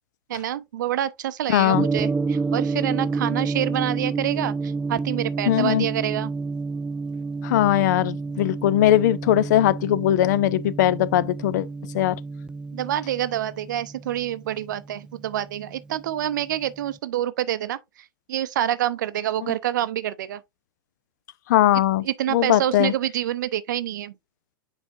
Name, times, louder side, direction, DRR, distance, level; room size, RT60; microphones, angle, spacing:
voice 1, 0.3-6.3 12.7-17.8 18.3-20.4 22.0-24.1, right 12 dB, 60° right, 0.6 m, -27 dB
voice 2, 1.5-1.8 5.5-5.9 7.4-11.7 11.9-12.2 21.5-22.0 22.3-22.9, left 12 dB, 50° left, 0.5 m, -20 dB
Gong, 1.7-15.9, right 4 dB, 5° right, 0.3 m, -29 dB
8.0 x 4.9 x 2.5 m
figure-of-eight pair, 95°, 12 cm